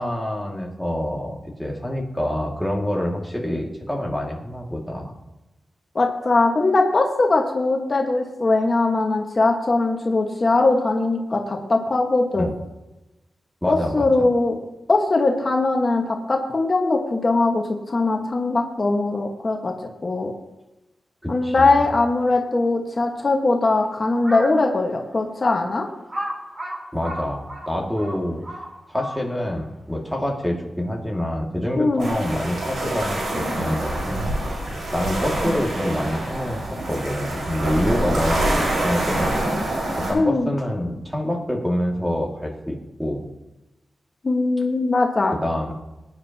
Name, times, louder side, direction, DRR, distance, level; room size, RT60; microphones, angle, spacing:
voice 1, 0.0-5.1 12.4-12.5 13.6-14.3 21.2-21.7 26.9-28.4 28.9-34.6 34.9-39.4 40.0-43.2 45.3-45.7, left 1 dB, ahead, 0 dB, 2.2 m, -26 dB
voice 2, 5.9-12.5 13.7-14.6 14.9-19.7 20.0-20.3 21.3-25.9 31.8-32.1 40.1-40.5 44.2-45.3, left 3 dB, 45° left, 1 dB, 1.5 m, -20 dB
Crow, 24.1-24.6 25.2-25.3 26.1-29.5, equal, 35° right, 3.0 m, -33 dB
sound 1, 32.0-40.1, right 1 dB, 85° right, 5.1 m, -26 dB
18.0 x 10.0 x 2.9 m, 1.0 s
cardioid pair, 70°, 0 cm